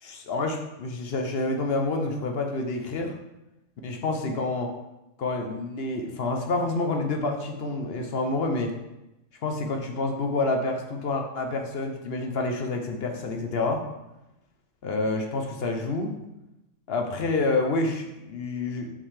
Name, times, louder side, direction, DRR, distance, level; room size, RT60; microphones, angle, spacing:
voice 1, 0.0-3.1 3.8-4.7 5.2-8.7 9.4-13.8 14.8-16.2 16.9-18.9, left 3 dB, 55° left, 3 dB, 0.8 m, -28 dB
5.7 x 5.3 x 3.2 m, 0.94 s
omnidirectional pair, 1.3 m